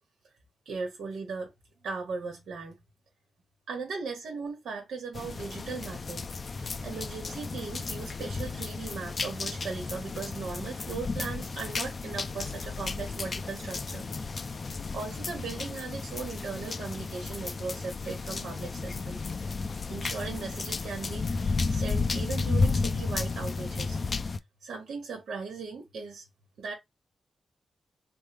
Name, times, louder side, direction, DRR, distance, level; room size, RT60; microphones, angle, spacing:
voice 1, 0.6-1.5 1.8-2.8 3.7-6.3 6.6-14.1 14.9-19.2 19.9-24.0 24.6-26.2 26.6-26.7, right 4 dB, 80° right, 1.1 m, -38 dB
sound 1, 5.1-24.4, left 4 dB, 45° left, 0.4 m, -33 dB
3.5 x 2.1 x 3.3 m
cardioid pair, 90°, 0 cm